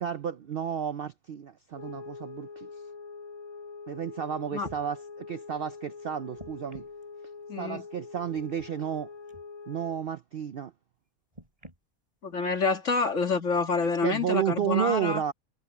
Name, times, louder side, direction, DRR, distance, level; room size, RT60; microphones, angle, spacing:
voice 1, 0.0-2.7 3.9-6.8 7.6-9.1 9.7-10.7 14.0-15.3, right 9 dB, 60° right, 0.6 m, -32 dB
sound 1, 1.7-10.1, left 4 dB, 25° left, 1.9 m, -44 dB
sound 2, 4.1-4.2 4.6-4.8 6.3-7.0 8.3-8.7 9.3-9.5 11.3-11.8 12.7-12.8, equal, 25° right, 3.5 m, -47 dB
voice 2, 7.5-7.8 12.2-15.2, left 4 dB, 60° left, 2.4 m, -27 dB
omnidirectional pair, 1.5 m